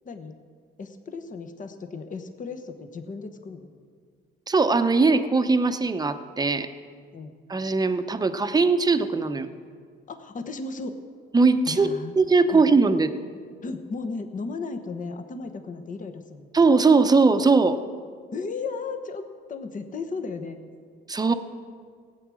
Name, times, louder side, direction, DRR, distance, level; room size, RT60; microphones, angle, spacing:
voice 1, 0.0-0.4 0.8-3.7 7.1-7.3 10.1-10.9 11.7-12.1 12.5-12.7 13.6-16.5 18.3-20.6, left 4 dB, 40° left, 7 dB, 1.1 m, -35 dB
voice 2, 4.5-6.7 7.5-9.5 11.3-13.1 16.5-17.8 21.1-21.3, right 4 dB, 20° right, 9 dB, 0.8 m, -20 dB
16.5 x 8.4 x 6.3 m, 2.1 s
cardioid pair, 90°, 20 cm